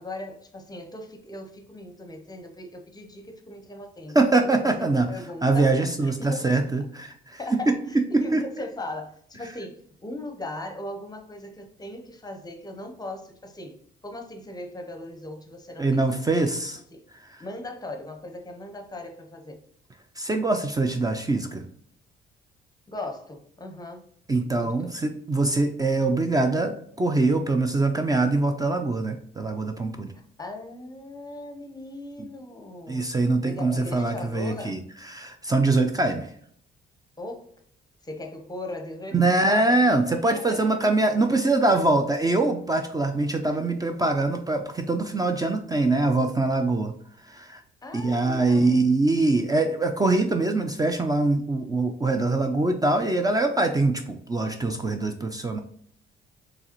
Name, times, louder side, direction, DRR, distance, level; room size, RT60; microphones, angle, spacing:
voice 1, 0.0-6.7 7.4-13.8 14.0-16.2 16.4-16.5 16.9-17.0 17.4-19.6 22.9-24.0 24.6-24.9 30.1-33.1 33.4-34.8 37.2-37.5 38.0-40.9 47.8-48.8, left 2 dB, 20° left, 0.8 m, -38 dB
voice 2, 4.1-5.1 5.4-7.4 7.7-7.8 8.1-8.4 15.8-16.8 17.2-17.4 20.2-21.6 24.3-30.1 32.2-32.3 32.9-36.3 39.1-46.9 47.3-47.6 47.9-55.6, right 2 dB, 20° right, 0.4 m, -23 dB
4.6 x 3.2 x 2.9 m
cardioid pair, 90°, 20 cm